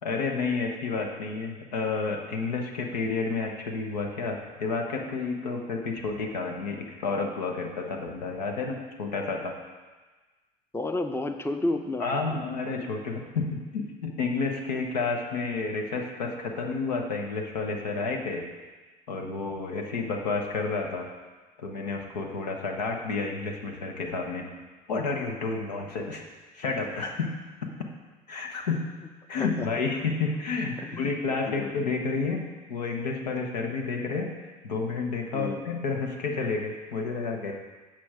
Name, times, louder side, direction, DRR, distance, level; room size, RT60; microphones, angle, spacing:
voice 1, 0.0-9.5 12.0-18.5 19.1-21.1 21.6-24.5 24.9-26.2 26.5-27.3 27.6-27.7 28.3-28.9 29.3-34.4 34.6-37.5, left 4 dB, 90° left, 2 dB, 1.0 m, -30 dB
voice 2, 10.7-12.5 29.4-29.7 30.8-31.1 31.5-31.8 35.3-35.7, left 2 dB, 10° left, 8 dB, 0.7 m, -31 dB
8.6 x 6.1 x 4.8 m, 1.3 s
hypercardioid pair, 65°, 21 cm